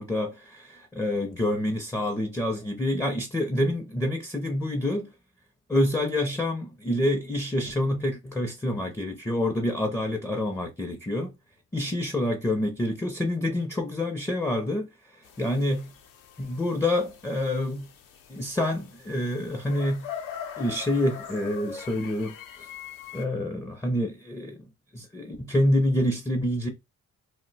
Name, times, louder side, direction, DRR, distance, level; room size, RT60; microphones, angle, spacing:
voice 1, 0.0-5.1 5.7-11.3 11.7-15.9 16.4-17.9 18.3-20.1 20.6-22.7 23.1-24.6 24.9-26.7, left 1 dB, 10° left, 0.4 m, -27 dB
sound 1, 15.2-23.3, left 8 dB, 75° left, 0.7 m, -42 dB
2.5 x 2.1 x 3.8 m
cardioid pair, 140°, 33 cm